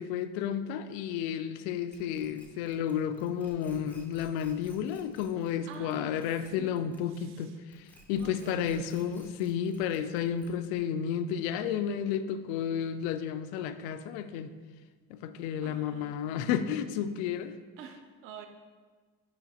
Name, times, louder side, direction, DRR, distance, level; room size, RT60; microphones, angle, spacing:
voice 1, 0.0-14.5 15.1-17.6, left 8 dB, 85° left, 11 dB, 0.5 m, -32 dB
sound 1, 1.9-7.4 7.7-10.8, equal, 5° left, 0.4 m, -56 dB
voice 2, 5.7-6.2 6.6-6.8 7.1-7.6 8.1-8.8 15.6-16.7 17.8-18.5, right 7 dB, 45° right, 6 dB, 0.6 m, -47 dB
7.6 x 3.2 x 4.3 m, 1.4 s
cardioid pair, 175°, 31 cm